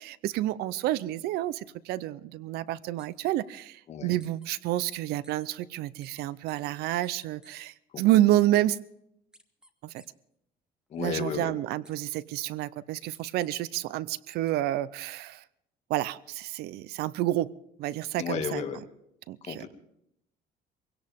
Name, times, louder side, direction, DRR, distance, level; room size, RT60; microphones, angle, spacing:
voice 1, 0.0-8.8 9.8-10.0 11.0-15.4 15.9-17.5 17.8-18.6 19.3-19.6, right 14 dB, 75° right, 0.6 m, -29 dB
sound 1, 3.0-3.3 4.2-4.5 5.2-5.5 6.0-6.6 7.0-7.6 8.1-8.8 9.3-9.7 10.0-10.1 11.8-12.2 13.1-13.5 14.5-14.6, right 1 dB, 5° right, 1.1 m, -56 dB
voice 2, 3.9-4.2 7.9-8.2 10.9-11.5 18.2-18.8 19.4-19.7, left 7 dB, 40° left, 2.1 m, -33 dB
23.5 x 17.0 x 3.5 m
cardioid pair, 150°, 17 cm